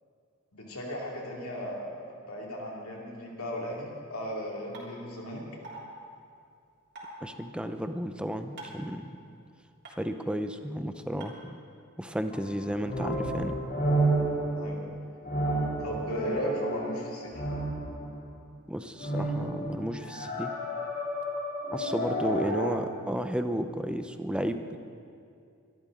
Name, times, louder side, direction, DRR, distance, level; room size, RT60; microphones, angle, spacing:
voice 1, 0.5-5.4 14.5-14.9 15.8-17.4, equal, 80° left, -2 dB, 2.6 m, -36 dB
sound 1, 4.7-4.8 5.6-5.8 7.0-7.1 8.6-8.8 9.8-9.9 11.2-11.3, right 3 dB, 55° right, 3.6 m, -42 dB
voice 2, 7.2-9.1 10.0-11.6 12.0-13.6 18.7-20.5 21.7-24.8, equal, 5° right, 8 dB, 0.6 m, -33 dB
sound 2, 12.3-18.2 19.0-22.7, right 1 dB, 50° left, 3.0 m, -31 dB
23.5 x 12.5 x 3.8 m, 2.4 s
head